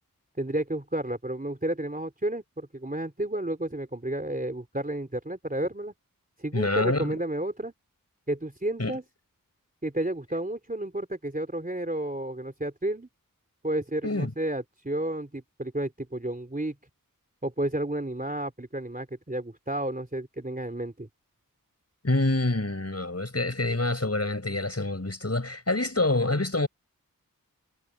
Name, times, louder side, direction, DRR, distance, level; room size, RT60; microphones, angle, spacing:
voice 1, 0.4-5.9 6.4-7.7 8.3-9.0 9.8-13.1 13.6-16.7 17.4-21.1, right 1 dB, 25° right, 3.4 m, -31 dB
voice 2, 6.5-7.2 8.8-9.0 14.0-14.3 22.0-26.7, left 2 dB, 45° left, 6.4 m, -26 dB
wide cardioid pair, 40°, 34 cm